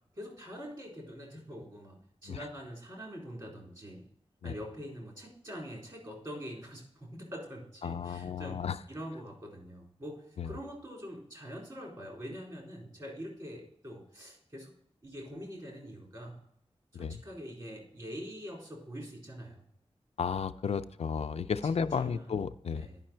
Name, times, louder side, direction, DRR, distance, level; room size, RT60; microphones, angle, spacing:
voice 1, 0.1-2.0 2.2-4.0 4.4-8.6 8.9-14.7 15.0-16.4 16.9-19.6 22.0-22.3 22.7-23.0, equal, 40° right, -2 dB, 3.9 m, -44 dB
voice 2, 7.8-8.8 10.4-10.5 16.9-17.2 20.2-22.9, left 6 dB, 75° left, 10 dB, 0.4 m, -33 dB
10.5 x 5.6 x 4.4 m, 0.72 s
wide cardioid pair, 95°, 11 cm